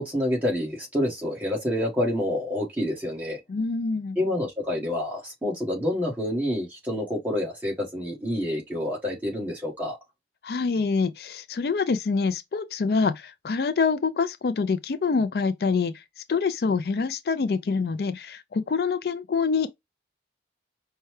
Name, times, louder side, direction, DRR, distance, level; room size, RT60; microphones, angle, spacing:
voice 1, 0.0-3.4 4.1-10.0, left 1 dB, 10° right, 1.6 m, -28 dB
voice 2, 3.5-4.2 10.4-16.0 16.3-19.7, left 4 dB, 65° left, 0.4 m, -26 dB
5.4 x 2.3 x 3.2 m
head